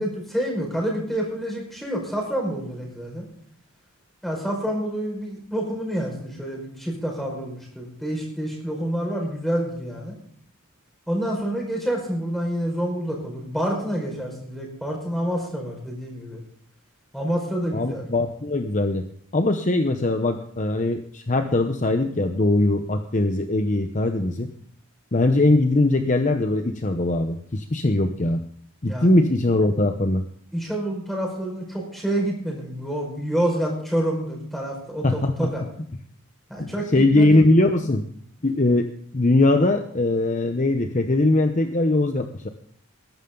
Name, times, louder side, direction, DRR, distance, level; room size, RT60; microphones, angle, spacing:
voice 1, 0.0-3.2 4.2-10.2 11.1-16.4 17.1-18.0 28.9-29.1 30.5-35.6 36.5-36.9 37.1-37.4, right 1 dB, ahead, -1 dB, 5.3 m, -28 dB
voice 2, 17.7-19.0 19.3-24.5 25.1-28.4 28.8-30.2 35.0-35.5 36.6-38.0 38.4-42.5, left 2 dB, 35° left, 6 dB, 0.9 m, -21 dB
21.0 x 11.5 x 3.9 m, 0.64 s
head